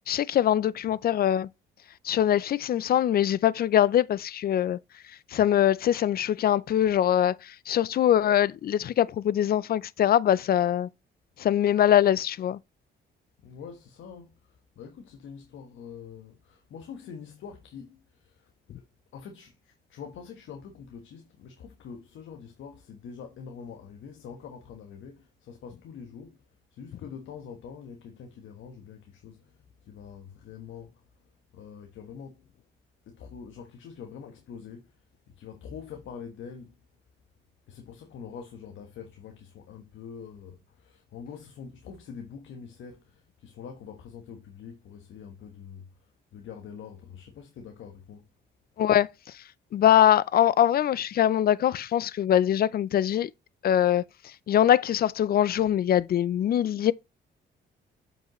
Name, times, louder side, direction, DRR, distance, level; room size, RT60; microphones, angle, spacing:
voice 1, 0.1-1.5 2.0-4.8 5.3-10.9 11.4-12.6 48.8-49.1 49.7-53.3 53.6-54.0 54.5-56.9, left 11 dB, 50° left, 0.4 m, -23 dB
voice 2, 13.4-18.5 18.7-26.4 26.7-31.0 31.5-32.5 33.0-36.7 37.7-48.3, left 6 dB, 75° left, 1.2 m, -45 dB
7.4 x 5.3 x 3.0 m
cardioid pair, 90°, 20 cm